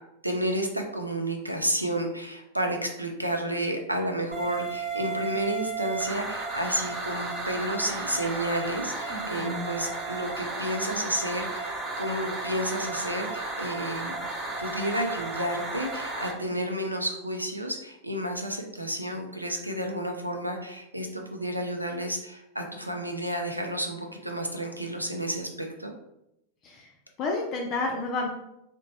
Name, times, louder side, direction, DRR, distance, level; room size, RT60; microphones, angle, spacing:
voice 1, 0.2-14.1 14.6-25.9, right 1 dB, 85° right, 2 dB, 0.5 m, -31 dB
sound 1, 4.3-16.3, right 3 dB, 20° right, 0.7 m, -33 dB
voice 2, 9.1-9.7 26.6-26.9 27.2-28.3, left 3 dB, 35° left, 0 dB, 0.4 m, -30 dB
3.8 x 2.1 x 2.8 m, 0.82 s
figure-of-eight pair, 90°, 0 cm